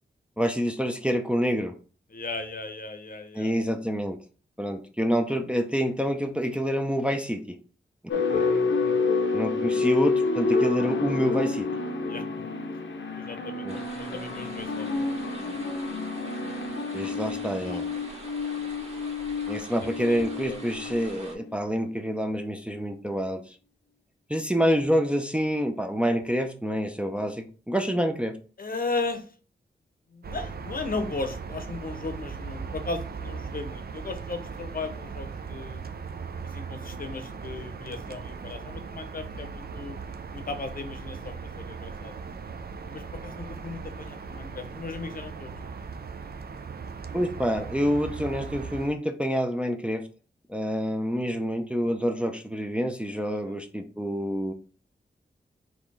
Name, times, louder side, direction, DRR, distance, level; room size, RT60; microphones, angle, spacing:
voice 1, 0.4-1.7 3.4-4.2 4.6-7.6 8.1-8.2 9.3-11.7 13.6-13.8 16.9-17.9 19.5-23.6 24.3-28.4 47.1-50.1 50.5-54.5, equal, 5° right, 5 dB, 0.5 m, -27 dB
voice 2, 2.1-3.5 8.3-9.1 12.0-12.2 13.2-15.1 17.2-17.4 17.6-17.8 18.6-18.9 19.5-20.1 20.5-20.6 28.6-29.3 30.1-35.8 36.5-40.0 40.3-42.2 42.9-45.5 53.3-53.6, left 3 dB, 50° left, 7 dB, 0.8 m, -36 dB
sound 1, 8.1-21.5, left 4 dB, 80° left, 0.7 m, -28 dB
sound 2, 13.7-21.4, right 1 dB, 35° right, 1.6 m, -45 dB
sound 3, 30.2-48.9, right 5 dB, 55° right, 0.5 m, -38 dB
4.2 x 3.0 x 3.3 m, 0.38 s
wide cardioid pair, 65°, 19 cm